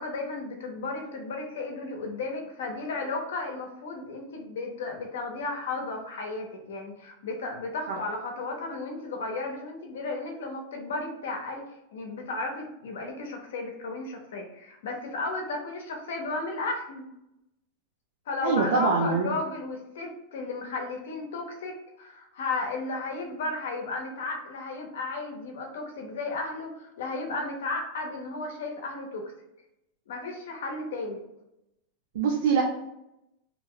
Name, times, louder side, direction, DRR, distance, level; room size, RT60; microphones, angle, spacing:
voice 1, 0.0-11.6 11.9-17.0 18.3-29.3 30.1-31.2, left 3 dB, 85° left, 2 dB, 0.7 m, -34 dB
voice 2, 18.4-19.4 32.1-32.6, right 5 dB, 80° right, 0 dB, 0.5 m, -24 dB
2.9 x 2.0 x 3.7 m, 0.87 s
supercardioid pair, 140°, 0 cm